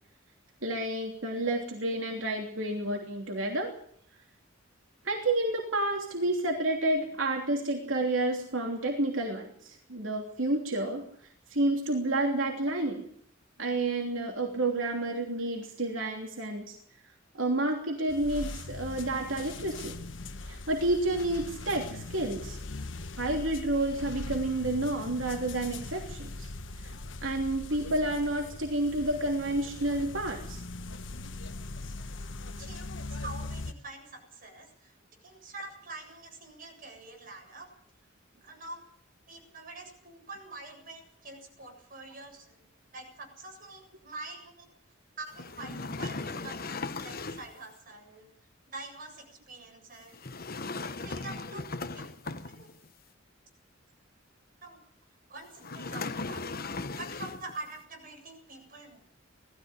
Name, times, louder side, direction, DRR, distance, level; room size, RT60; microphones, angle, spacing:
voice 1, 0.6-3.7 5.0-11.0 11.5-13.1 13.6-16.8 17.3-19.9 20.5-22.6 23.2-26.5 26.8-26.9 27.2-30.6, right 2 dB, 85° right, 2 dB, 3.1 m, -30 dB
sound 1, 18.1-33.7, left 2 dB, 70° left, 1.3 m, -40 dB
voice 2, 32.6-35.0 35.2-37.7 38.4-38.8 39.3-42.6 42.9-44.7 45.2-48.3 48.7-50.1 50.8-51.6 51.9-52.7 54.6-54.8 55.3-56.4 57.0-59.0, right 2 dB, 45° right, 3 dB, 7.8 m, -45 dB
sound 2, 45.3-47.6 50.1-52.9 55.6-57.6, left 3 dB, 50° left, 1.2 m, -37 dB
19.5 x 15.0 x 9.8 m, 0.64 s
head